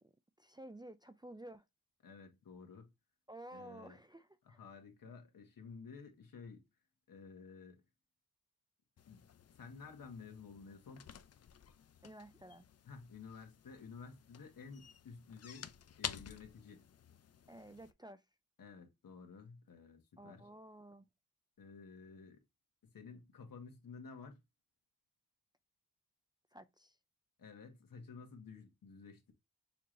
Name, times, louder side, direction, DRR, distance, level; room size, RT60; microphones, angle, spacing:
voice 1, 0.4-1.6 3.3-4.6 12.0-12.6 17.5-18.2 20.2-21.0 26.5-27.0, right 1 dB, 10° right, 0.5 m, -53 dB
voice 2, 2.0-2.9 3.5-4.0 4.4-6.6 7.1-7.8 9.1-9.2 9.5-11.0 12.8-15.7 16.0-16.8 18.6-20.5 21.6-22.4 22.8-24.4 27.4-29.3, left 5 dB, 65° left, 1.6 m, -53 dB
sound 1, 9.0-17.9, left 8 dB, 45° left, 0.5 m, -51 dB
6.8 x 3.0 x 2.6 m
cardioid pair, 70°, 35 cm